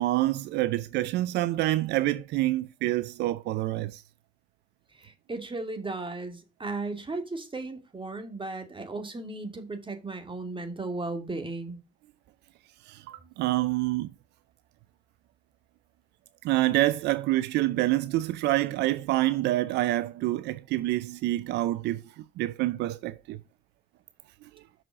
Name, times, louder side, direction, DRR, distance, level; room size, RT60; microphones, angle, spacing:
voice 1, 0.0-4.0 12.8-14.1 16.4-23.4, right 16 dB, 80° right, 0.5 m, -27 dB
voice 2, 4.9-11.8, right 3 dB, 30° right, 2.6 m, -36 dB
6.3 x 6.1 x 5.2 m
hypercardioid pair, 50°, 17 cm